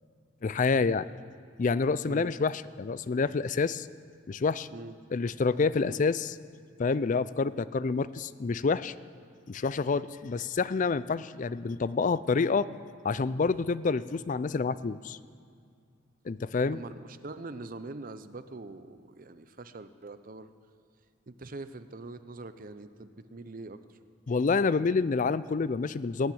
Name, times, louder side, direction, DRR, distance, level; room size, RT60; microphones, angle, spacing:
voice 1, 0.4-1.1 1.6-3.9 4.3-4.7 5.1-6.3 6.8-8.9 9.5-12.7 13.0-15.2 16.3-16.8 24.3-26.3, left 4 dB, 40° left, 17 dB, 0.4 m, -28 dB
voice 2, 16.7-20.5 21.3-24.0, right 3 dB, 40° right, 11 dB, 0.6 m, -43 dB
19.0 x 7.4 x 9.4 m, 2.2 s
head